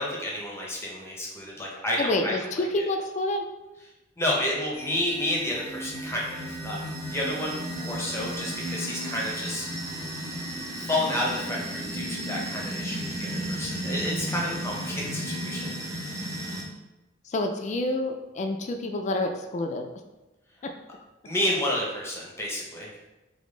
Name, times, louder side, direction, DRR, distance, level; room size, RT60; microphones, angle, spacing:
voice 1, 0.0-2.8 4.2-9.7 10.7-15.8 21.2-22.9, left 1 dB, 15° left, -3 dB, 0.7 m, -30 dB
voice 2, 2.0-3.4 17.3-19.9 20.6-20.7, left 2 dB, 40° left, 5 dB, 0.3 m, -28 dB
sound 1, 4.7-16.6, right 1 dB, 20° right, 0.6 m, -34 dB
3.6 x 3.4 x 3.8 m, 1.0 s
head